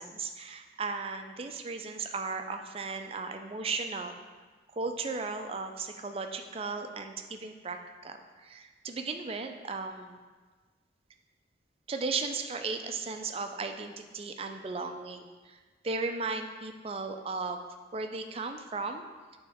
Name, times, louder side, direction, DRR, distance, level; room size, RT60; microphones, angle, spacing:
voice 1, 0.0-4.2 4.7-7.8 8.0-10.2 11.9-19.0, right 4 dB, 30° right, 6 dB, 0.4 m, -36 dB
8.9 x 3.6 x 3.5 m, 1.4 s
head